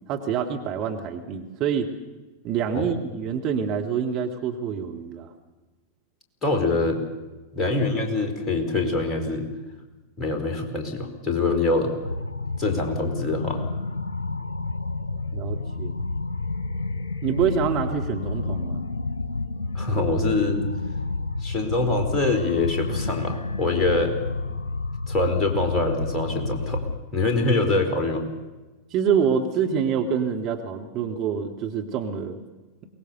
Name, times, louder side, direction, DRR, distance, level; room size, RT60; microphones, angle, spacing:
voice 1, 0.1-1.9 2.4-5.3 15.3-15.9 17.2-18.8 28.9-32.4, right 7 dB, 40° right, 3 dB, 2.1 m, -26 dB
voice 2, 6.4-7.0 7.5-9.5 10.2-11.9 12.6-13.7 19.7-20.6 21.4-24.2 25.1-26.9 27.1-28.3, left 3 dB, 20° left, 3 dB, 4.2 m, -24 dB
sound 1, 12.0-27.0, left 3 dB, 70° left, 1.2 m, -30 dB
23.0 x 19.5 x 6.9 m, 1.2 s
figure-of-eight pair, 90°, 0 cm